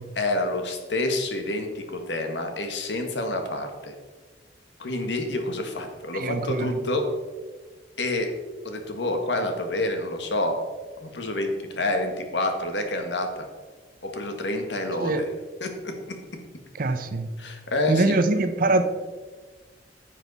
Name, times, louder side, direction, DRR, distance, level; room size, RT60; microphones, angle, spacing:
voice 1, 0.1-3.9 4.8-7.0 8.0-8.3 8.6-10.5 11.0-13.4 14.0-15.3 15.6-15.9 17.4-18.2, left 1 dB, 75° left, 5 dB, 1.5 m, -28 dB
voice 2, 6.1-6.8 15.0-15.2 16.8-17.3 17.9-18.8, right 2 dB, 50° right, 9 dB, 0.7 m, -23 dB
10.5 x 7.4 x 4.1 m, 1.4 s
head